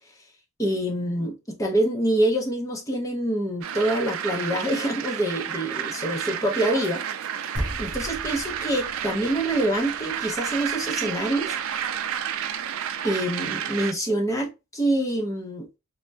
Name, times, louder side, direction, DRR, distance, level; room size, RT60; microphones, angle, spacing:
voice 1, 0.6-7.0 7.8-11.6 13.0-15.7, right 1 dB, 15° left, 0.6 m, -26 dB
sound 1, 3.6-13.9, right 9 dB, 65° right, 0.4 m, -31 dB
sound 2, 7.6-12.1, equal, 85° left, 1.1 m, -37 dB
3.3 x 2.1 x 2.5 m
head